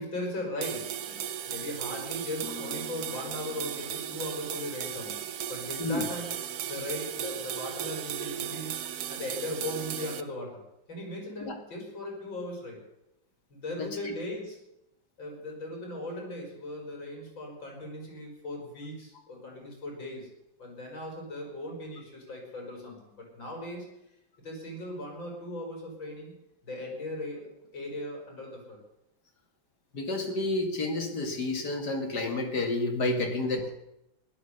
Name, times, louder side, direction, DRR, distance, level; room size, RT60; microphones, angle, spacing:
voice 1, 0.0-6.3 6.7-8.8 9.1-10.6 10.9-12.8 13.5-14.6 15.2-20.3 20.6-23.9 24.4-26.3 26.6-28.8 33.3-33.5, left 1 dB, 70° left, 0 dB, 5.9 m, -38 dB
sound 1, 0.6-10.2, right 10 dB, 65° right, 1.0 m, -36 dB
sound 2, 2.4-8.1, left 2 dB, 10° right, 2.4 m, -50 dB
voice 2, 13.8-14.1 29.9-33.7, left 2 dB, 55° left, 3 dB, 2.6 m, -30 dB
16.0 x 11.5 x 6.6 m, 0.86 s
omnidirectional pair, 2.2 m